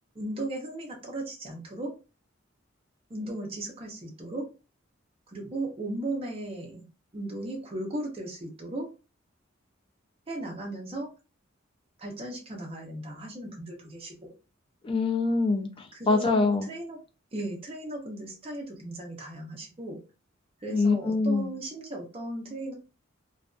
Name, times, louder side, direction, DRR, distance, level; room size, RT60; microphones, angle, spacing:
voice 1, 0.1-1.9 3.1-4.4 5.3-6.8 7.1-8.9 10.3-11.1 12.0-14.3 15.9-17.0 17.3-20.0 20.6-22.7, right 1 dB, 30° right, -1 dB, 0.6 m, -36 dB
voice 2, 14.8-16.7 20.7-21.5, left 3 dB, 25° left, 3 dB, 0.4 m, -25 dB
2.5 x 2.2 x 2.3 m, 0.31 s
head